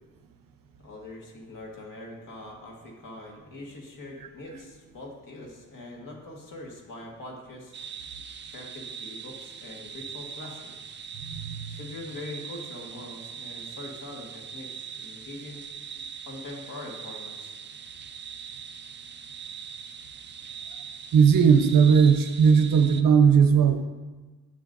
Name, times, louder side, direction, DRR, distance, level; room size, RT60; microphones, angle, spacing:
voice 1, 0.8-7.7 8.4-10.9 11.7-15.6 16.3-17.5, left 2 dB, 75° left, -1 dB, 1.6 m, -42 dB
sound 1, 7.7-23.0, right 6 dB, 35° right, 0.4 m, -41 dB
voice 2, 11.2-11.8 21.1-23.8, right 6 dB, 85° right, 7 dB, 0.7 m, -18 dB
9.8 x 7.1 x 2.6 m, 1.3 s
wide cardioid pair, 135°, 33 cm